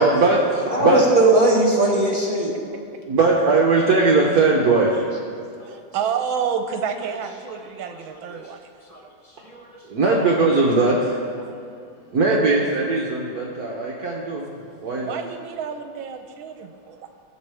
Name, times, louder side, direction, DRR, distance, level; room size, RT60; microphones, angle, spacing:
voice 1, 0.0-1.0 2.7-2.8 3.1-5.1 9.9-11.2 12.1-14.5 14.8-15.2, right 3 dB, 55° right, -2 dB, 1.3 m, -19 dB
voice 2, 0.7-2.5 5.6-5.7 7.5-7.6 7.9-8.0 8.9-9.0 9.5-9.6, right 2 dB, 20° left, -3 dB, 1.4 m, -19 dB
voice 3, 5.7-8.6 15.0-17.0, right 7 dB, 80° right, 6 dB, 1.5 m, -29 dB
18.0 x 6.9 x 3.4 m, 2.3 s
omnidirectional pair, 2.2 m